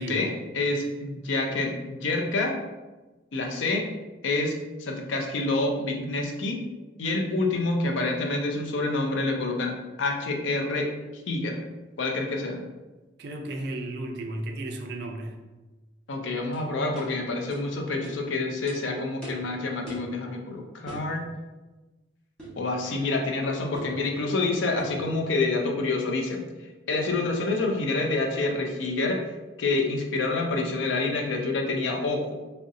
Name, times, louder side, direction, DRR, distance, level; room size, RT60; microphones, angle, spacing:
voice 1, 0.0-2.5 3.3-3.8 4.2-6.6 7.0-9.7 10.0-11.6 12.0-12.6 16.1-21.3 22.6-26.5 26.9-29.2 29.6-32.3, left 2 dB, 75° left, 2 dB, 0.5 m, -27 dB
voice 2, 13.2-15.4, right 1 dB, 55° right, 4 dB, 0.4 m, -34 dB
sound 1, 16.5-16.6 16.9-17.1 17.5-17.6 18.0-18.2 18.7-18.8 19.2-19.5 19.9-20.1 20.9-21.1 22.4-22.6 23.7-24.0 24.8-25.0, right 2 dB, 5° left, 0.7 m, -41 dB
2.7 x 2.1 x 3.6 m, 1.2 s
head